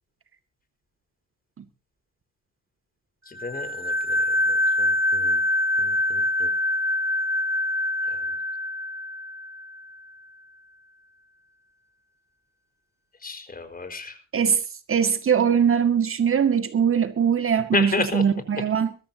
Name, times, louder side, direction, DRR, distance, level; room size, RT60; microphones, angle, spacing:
voice 1, 3.3-4.2 4.5-5.4 5.8-6.5 8.1-8.2 13.2-14.1 17.7-18.2, left 3 dB, 30° left, 4.8 m, -31 dB
sound 1, 3.4-9.8, left 1 dB, 10° right, 4.4 m, -25 dB
voice 2, 14.9-19.0, right 7 dB, 45° right, 2.0 m, -21 dB
22.5 x 14.0 x 2.8 m
cardioid pair, 90°, 30 cm